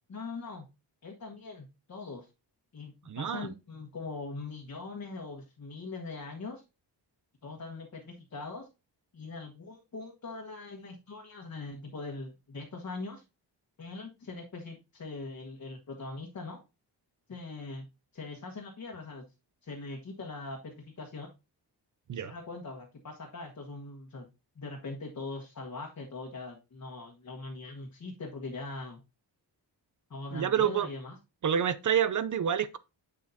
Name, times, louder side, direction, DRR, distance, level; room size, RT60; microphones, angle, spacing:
voice 1, 0.1-0.6 1.0-2.3 2.7-6.6 7.4-8.7 9.1-13.2 13.8-16.6 17.3-17.9 18.1-19.2 19.6-21.3 22.1-24.3 24.5-29.0 30.1-31.2, left 3 dB, 40° left, 1.4 m, -41 dB
voice 2, 3.1-3.5 22.1-22.3 30.3-30.9 31.4-32.8, right 8 dB, 45° right, 0.5 m, -28 dB
7.3 x 6.6 x 2.7 m
wide cardioid pair, 115°, 42 cm